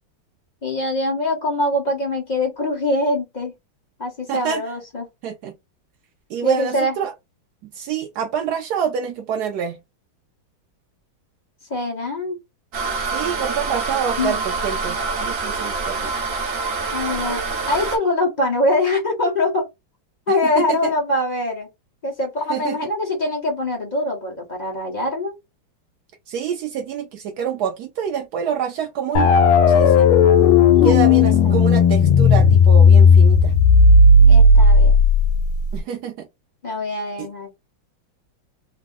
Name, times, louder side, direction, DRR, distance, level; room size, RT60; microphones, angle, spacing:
voice 1, 0.6-3.5 4.0-5.1 6.4-6.9 11.7-12.4 14.2-14.4 16.9-19.7 20.3-21.7 22.0-25.4 30.7-31.7 34.3-35.0 36.6-37.5, left 2 dB, 35° left, 0.7 m, -23 dB
voice 2, 4.3-4.6 5.2-5.5 6.3-7.1 7.6-9.8 13.1-16.1 20.4-20.9 22.5-22.8 26.3-29.3 29.7-30.1 30.8-33.5 35.7-36.3 37.2-37.3, right 8 dB, 85° right, 0.8 m, -26 dB
sound 1, 12.7-18.0, right 4 dB, 55° right, 1.0 m, -26 dB
sound 2, 29.2-35.8, left 3 dB, 80° left, 1.5 m, -12 dB
3.5 x 2.0 x 3.6 m
omnidirectional pair, 2.3 m